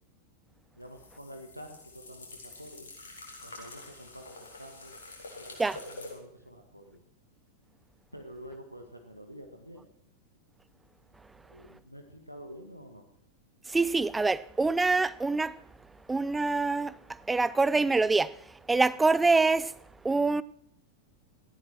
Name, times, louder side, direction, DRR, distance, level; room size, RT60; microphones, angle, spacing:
voice 1, 0.7-2.9 3.4-4.9 5.4-7.0 8.1-9.9 11.5-13.0, equal, 90° right, 1.8 m, -48 dB
sound 1, 0.8-6.1, left 2 dB, 70° left, 4.1 m, -47 dB
voice 2, 13.7-15.6 16.1-16.9 17.3-18.4 18.7-19.7 20.0-20.4, right 3 dB, 10° right, 0.5 m, -25 dB
18.0 x 14.0 x 4.6 m
figure-of-eight pair, 90°, 0 cm